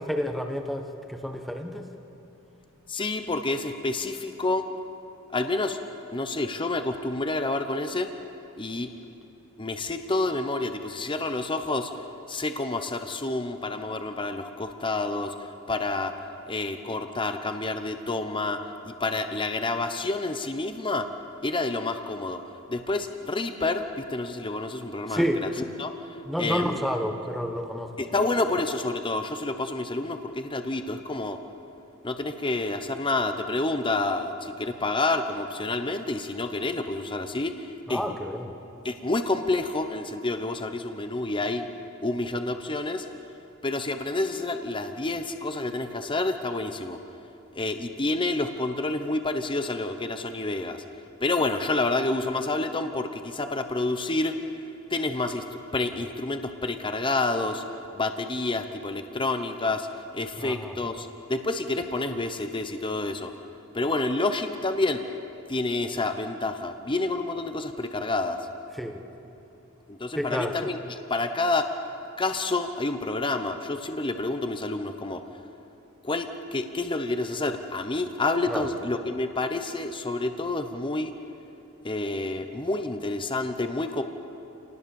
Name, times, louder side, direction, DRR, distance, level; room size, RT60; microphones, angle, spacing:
voice 1, 0.0-1.8 25.1-25.4 26.3-28.0 37.9-38.5 60.4-60.8 68.8-69.0 70.1-70.5 78.5-78.7, equal, ahead, 4 dB, 1.2 m, -29 dB
voice 2, 2.9-4.7 5.3-5.8 6.1-8.1 8.6-8.9 9.6-11.9 12.3-15.3 15.7-16.1 16.5-21.1 21.4-22.4 22.7-25.5 25.8-25.9 26.4-26.8 28.0-31.4 32.0-37.6 37.9-38.0 38.8-41.7 42.0-43.1 43.6-47.0 47.6-50.8 51.2-54.4 54.9-55.4 55.7-57.6 57.9-59.9 60.1-63.3 63.7-65.0 65.5-68.4 69.9-71.7 72.2-75.2 76.0-81.1 81.8-84.0, left 2 dB, 25° left, 7 dB, 0.9 m, -28 dB
28.0 x 19.0 x 7.1 m, 2.9 s
head